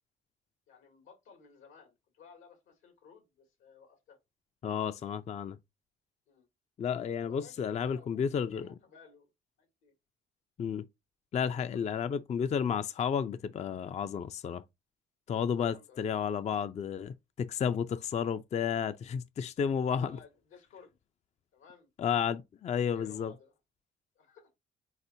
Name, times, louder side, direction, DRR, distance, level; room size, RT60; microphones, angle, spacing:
voice 1, 0.7-4.2 6.3-6.5 7.3-9.3 9.6-9.9 11.6-11.9 15.3-16.1 19.9-21.0 21.5-21.9 22.6-23.6 24.2-24.5, left 6 dB, 85° left, 2.0 m, -56 dB
voice 2, 4.6-5.6 6.8-8.7 10.6-10.8 11.3-14.6 15.3-20.2 22.0-23.3, left 7 dB, 35° left, 0.4 m, -32 dB
4.2 x 4.1 x 2.6 m
cardioid pair, 90°, 20 cm